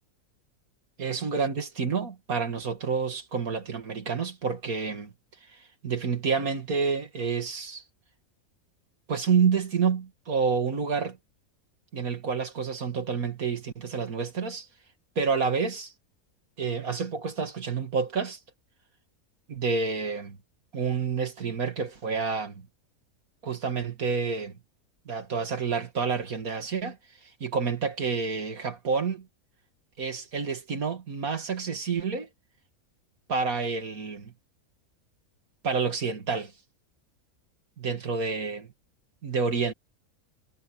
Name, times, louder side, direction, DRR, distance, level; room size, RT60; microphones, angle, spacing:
voice 1, 1.0-5.1 5.5-7.8 9.1-11.2 11.9-14.7 15.2-15.9 16.6-18.4 19.5-20.4 20.7-22.7 23.4-24.5 25.1-27.0 27.2-29.3 30.0-32.3 33.3-34.3 35.6-36.5 37.8-38.7 39.2-39.7, right 5 dB, 75° right, 2.8 m, -29 dB
omnidirectional pair, 1.5 m